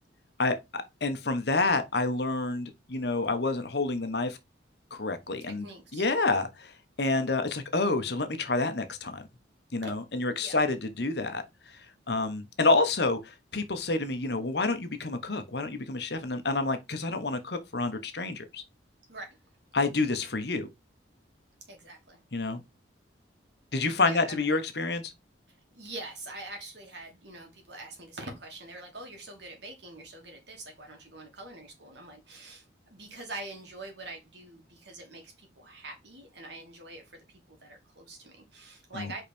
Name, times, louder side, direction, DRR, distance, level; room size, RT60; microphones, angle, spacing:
voice 1, 0.4-4.4 4.9-5.7 5.9-6.7 7.0-9.2 9.7-11.4 12.1-18.6 19.7-20.7 22.3-22.6 23.7-25.1 38.9-39.1, left 3 dB, 60° left, 1.1 m, -28 dB
voice 2, 5.4-6.0 9.8-9.9 10.4-10.6 19.1-19.4 21.7-22.2 24.0-24.4 25.7-39.2, right 2 dB, 65° right, 2.6 m, -44 dB
5.3 x 4.1 x 4.4 m
head